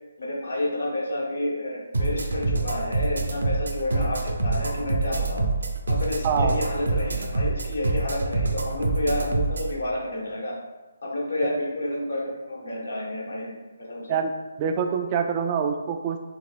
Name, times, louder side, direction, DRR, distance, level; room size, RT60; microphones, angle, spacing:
voice 1, 0.2-5.5 5.9-10.6 11.0-14.2, left 1 dB, 70° left, -3 dB, 1.3 m, -30 dB
sound 1, 1.9-9.7, right 3 dB, 70° right, 0.6 m, -26 dB
voice 2, 6.2-6.6 11.4-11.6 14.1-14.3 14.6-16.2, right 6 dB, 30° right, 5 dB, 0.3 m, -25 dB
5.0 x 3.0 x 2.5 m, 1.2 s
figure-of-eight pair, 145°, 0 cm